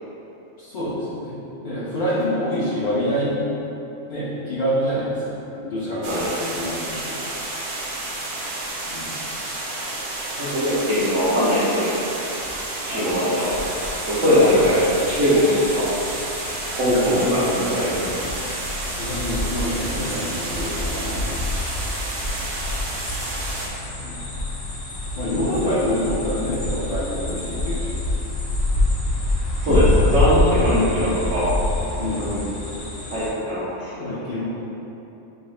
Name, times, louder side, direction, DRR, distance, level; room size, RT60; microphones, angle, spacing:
voice 1, 0.6-1.3 1.6-3.5 4.1-5.2 5.5-7.2 8.9-9.1 12.9-13.3 14.3-14.9 16.8-18.1 19.0-21.4 24.0-24.2 25.2-27.9 30.6-31.1 31.9-32.3 34.0-34.4, left 1 dB, 45° left, -12 dB, 0.8 m, -26 dB
sound 1, 6.0-23.7, right 2 dB, 55° right, 0.7 m, -31 dB
voice 2, 6.1-6.4 10.3-11.9 12.9-13.6 14.0-14.8 15.1-15.9 16.7-18.1 25.5-25.8 29.6-31.5 32.0-32.4 33.1-34.2, left 1 dB, 80° right, -10 dB, 1.3 m, -21 dB
sound 2, 13.3-33.3, left 1 dB, 85° left, 1.3 m, -27 dB
6.3 x 3.3 x 2.4 m, 2.9 s
omnidirectional pair, 1.3 m